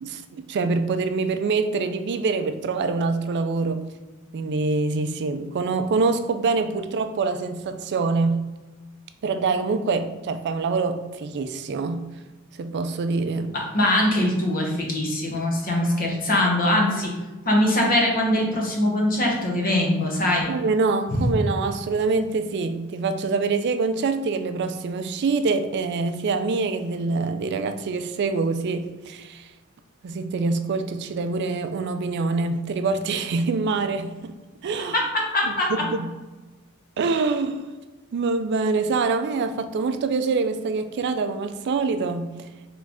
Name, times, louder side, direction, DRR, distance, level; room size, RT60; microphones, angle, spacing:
voice 1, 0.0-3.8 4.3-8.4 9.2-12.1 12.6-13.5 20.5-29.5 30.0-34.3 34.6-35.0 35.4-36.1 37.0-37.7 38.1-42.3, right 4 dB, 55° right, 8 dB, 0.3 m, -25 dB
voice 2, 13.5-17.1 17.5-20.5 21.1-21.3 34.8-35.8, left 1 dB, 45° left, -1 dB, 0.9 m, -22 dB
3.8 x 3.2 x 3.5 m, 1.2 s
head